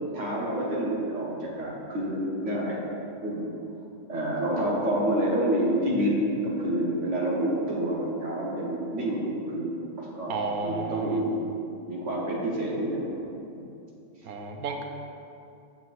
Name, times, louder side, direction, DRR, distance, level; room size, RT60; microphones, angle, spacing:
voice 1, 0.1-2.8 3.2-3.5 4.1-11.4 11.9-13.2 13.5-13.7, right 1 dB, 60° right, -4 dB, 1.2 m, -28 dB
voice 2, 10.3-11.2 14.2-14.8, right 4 dB, 90° right, 3 dB, 1.1 m, -32 dB
7.3 x 5.8 x 2.5 m, 2.6 s
omnidirectional pair, 1.5 m